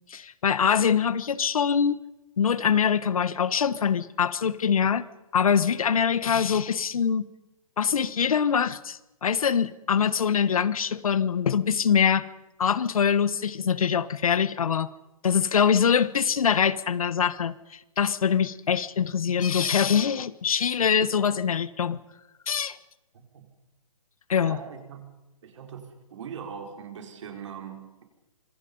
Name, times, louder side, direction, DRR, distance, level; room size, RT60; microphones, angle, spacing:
voice 1, 0.1-2.0 2.4-5.1 5.3-7.3 7.8-12.3 12.6-14.9 15.2-22.0 22.5-22.8 24.3-24.6, left 7 dB, 75° left, 17 dB, 1.3 m, -24 dB
voice 2, 24.4-25.1 25.4-28.0, right 7 dB, 55° right, 3 dB, 4.8 m, -41 dB
26.0 x 23.5 x 5.5 m, 0.97 s
hypercardioid pair, 155°, 18 cm